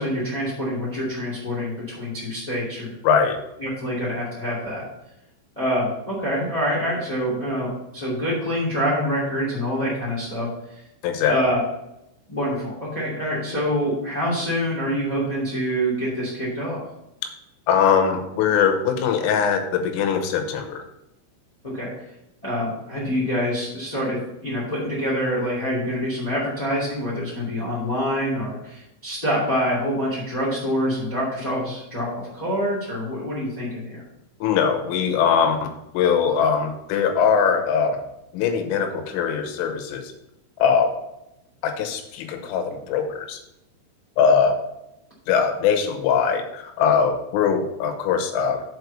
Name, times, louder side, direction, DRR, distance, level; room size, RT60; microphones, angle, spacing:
voice 1, 0.0-2.9 3.6-4.8 5.5-10.8 11.2-11.7 12.3-16.8 21.6-21.9 22.4-34.0, equal, 15° left, -7 dB, 1.4 m, -26 dB
voice 2, 3.0-3.4 11.0-11.4 17.7-20.8 34.4-38.0 38.3-40.1 40.6-40.9 41.6-43.4 44.2-44.6 45.3-48.6, left 7 dB, 85° left, 6 dB, 3.5 m, -21 dB
7.6 x 4.6 x 6.8 m, 0.85 s
omnidirectional pair, 5.8 m